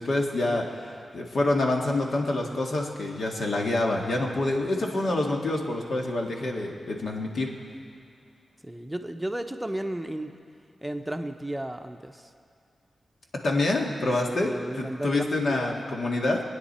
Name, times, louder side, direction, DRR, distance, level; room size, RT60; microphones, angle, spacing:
voice 1, 0.0-7.5 13.4-16.4, left 2 dB, 70° left, 0 dB, 2.0 m, -27 dB
voice 2, 8.6-10.4 10.8-12.3 14.3-15.9, right 1 dB, 10° right, 6 dB, 0.8 m, -34 dB
25.5 x 9.3 x 4.3 m, 2.4 s
cardioid pair, 65°, 0 cm